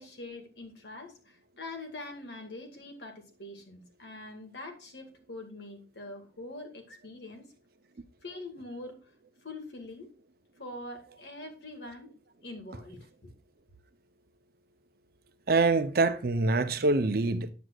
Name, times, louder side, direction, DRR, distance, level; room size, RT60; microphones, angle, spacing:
voice 1, 0.0-7.5 8.2-9.0 9.4-10.1 10.6-12.1 12.4-13.3, left 2 dB, 70° left, 2.1 m, -44 dB
voice 2, 15.5-17.5, right 3 dB, 55° right, 0.7 m, -25 dB
9.1 x 8.0 x 2.4 m
head